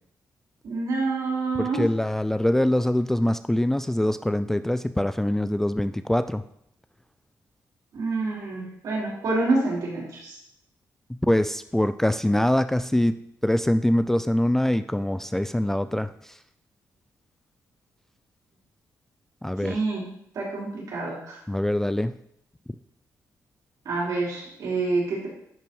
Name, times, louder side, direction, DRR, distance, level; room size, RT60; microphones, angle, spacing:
voice 1, 0.6-1.8 7.9-10.4 19.6-20.0 20.3-21.4 23.8-25.3, right 3 dB, 70° right, -4 dB, 4.3 m, -27 dB
voice 2, 1.6-6.4 11.1-13.2 13.4-16.4 19.4-19.8 21.5-22.1, left 1 dB, 5° left, 12 dB, 0.3 m, -24 dB
10.5 x 5.9 x 5.5 m, 0.73 s
cardioid pair, 130°, 6 cm